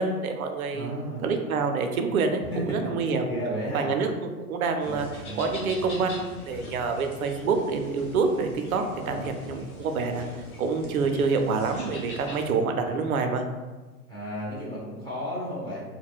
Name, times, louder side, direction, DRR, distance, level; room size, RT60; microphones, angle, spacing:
voice 1, 0.0-0.9 1.2-3.3 3.7-4.1 4.5-5.1 5.4-13.4, right 4 dB, 70° right, 5 dB, 0.5 m, -27 dB
voice 2, 0.7-1.3 2.4-2.6 3.3-3.9 4.8-5.7 9.0-9.2 12.5-13.0 14.1-15.8, equal, 10° left, -9 dB, 0.4 m, -34 dB
Rural road to Ahoni with grass munching cow, 4.8-12.5, left 2 dB, 70° left, 0.9 m, -42 dB
2.2 x 2.1 x 3.4 m, 1.3 s
figure-of-eight pair, 100°, 44 cm